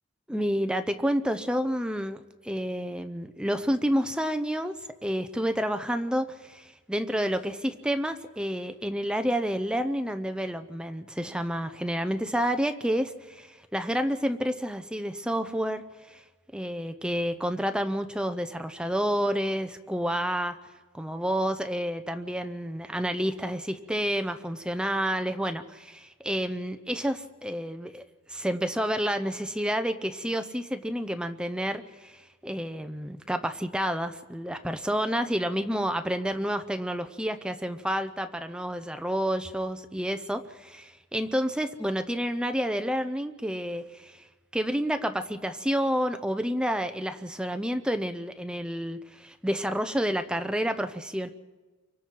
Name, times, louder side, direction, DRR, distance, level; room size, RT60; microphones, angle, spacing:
voice 1, 0.3-4.7 5.0-16.2 16.5-20.6 20.9-28.0 28.3-44.2 44.5-51.3, equal, 5° right, 8 dB, 0.7 m, -29 dB
29.5 x 24.0 x 4.7 m, 1.2 s
head